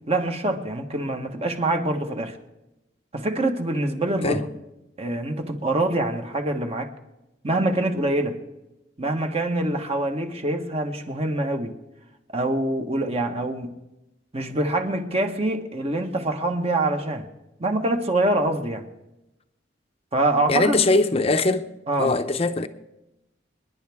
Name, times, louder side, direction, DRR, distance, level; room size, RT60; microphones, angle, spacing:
voice 1, 0.1-2.4 3.1-4.5 5.0-6.9 7.4-8.4 9.0-11.7 12.3-13.7 14.3-17.2 17.6-18.8 20.1-20.8 21.9-22.1, right 2 dB, 35° right, 1.3 m, -25 dB
voice 2, 20.5-21.7 22.0-22.7, left 3 dB, 35° left, 0.7 m, -21 dB
27.0 x 10.5 x 3.6 m
head